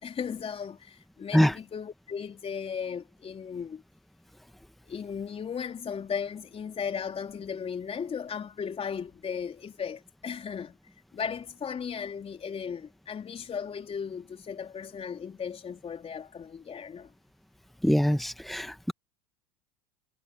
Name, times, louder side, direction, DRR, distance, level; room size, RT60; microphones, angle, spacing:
voice 1, 0.0-3.8 4.8-10.7 11.1-17.1, left 7 dB, 30° left, 4.2 m, -36 dB
voice 2, 17.8-18.9, equal, ahead, 1.6 m, -23 dB
hypercardioid pair, 80°, 19 cm